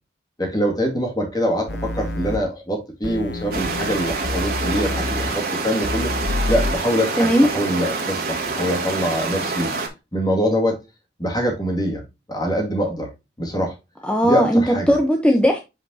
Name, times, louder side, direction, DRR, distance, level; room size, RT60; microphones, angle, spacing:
voice 1, 0.4-6.1 6.5-7.3 7.5-9.7 10.1-10.8 11.2-12.0 12.3-13.1 13.4-13.7 14.2-14.9, equal, 20° left, 2.1 m, -24 dB
sound 1, 1.7-2.4 3.0-5.3 5.8-6.7, left 2 dB, 80° left, 1.6 m, -27 dB
sound 2, 3.5-9.9, right 3 dB, 50° right, 1.9 m, -26 dB
voice 2, 7.2-7.5 14.0-15.6, equal, 5° left, 0.8 m, -17 dB
8.0 x 5.1 x 2.8 m
head